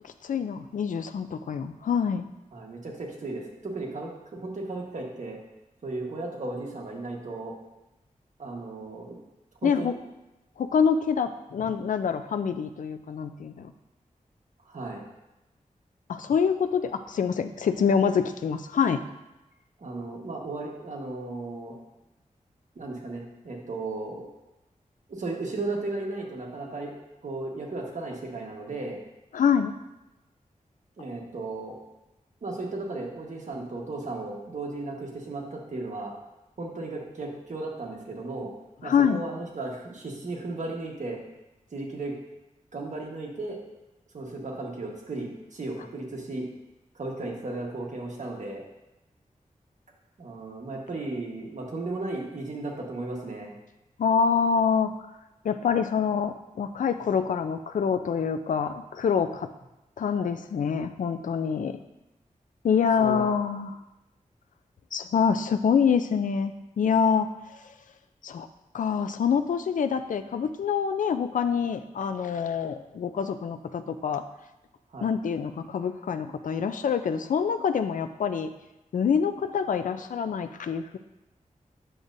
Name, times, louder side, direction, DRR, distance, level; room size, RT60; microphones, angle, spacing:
voice 1, 0.2-2.2 9.6-9.9 10.6-13.7 16.1-19.0 29.3-29.7 38.8-39.2 54.0-54.9 55.4-59.5 60.0-61.8 62.6-63.8 64.9-67.3 68.2-68.5 68.7-74.2 75.0-78.5 78.9-81.0, left 6 dB, 70° left, 8 dB, 0.4 m, -26 dB
voice 2, 2.5-5.4 5.8-7.5 8.4-9.2 9.6-10.0 14.7-15.0 19.8-21.7 22.7-24.3 25.1-26.9 27.2-29.0 31.0-31.8 32.4-36.1 36.6-38.5 38.8-41.2 41.7-42.1 42.7-43.6 44.1-46.5 46.9-48.6 50.2-53.5 63.0-63.4 74.9-75.1, right 2 dB, 60° right, -1 dB, 1.4 m, -35 dB
8.6 x 6.5 x 2.6 m, 0.96 s
wide cardioid pair, 105°, 14 cm